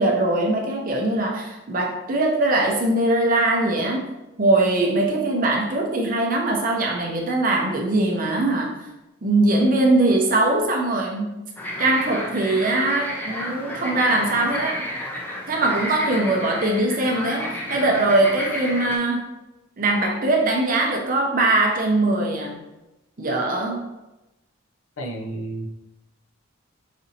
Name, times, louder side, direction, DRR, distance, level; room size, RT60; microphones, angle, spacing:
voice 1, 0.0-4.0 4.4-8.8 9.2-11.3 11.8-14.9 15.5-19.3 19.8-22.6 23.2-23.8, right 2 dB, 40° right, 1 dB, 0.6 m, -21 dB
sound 1, 11.6-19.0, left 1 dB, 10° left, 0.5 m, -31 dB
voice 2, 25.0-25.7, right 1 dB, 75° left, 3 dB, 0.5 m, -31 dB
5.0 x 2.7 x 2.7 m, 0.97 s
head